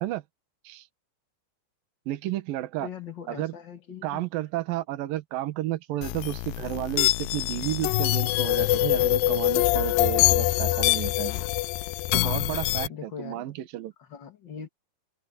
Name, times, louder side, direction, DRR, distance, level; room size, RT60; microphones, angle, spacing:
voice 1, 2.1-2.9 3.3-3.5 4.0-11.3 12.1-13.9, right 14 dB, 70° right, 2.8 m, -32 dB
voice 2, 2.8-4.3 12.9-13.5 14.0-14.7, left 7 dB, 45° left, 1.5 m, -41 dB
sound 1, 6.0-12.9, left 19 dB, 90° left, 2.0 m, -24 dB
omnidirectional pair, 4.6 m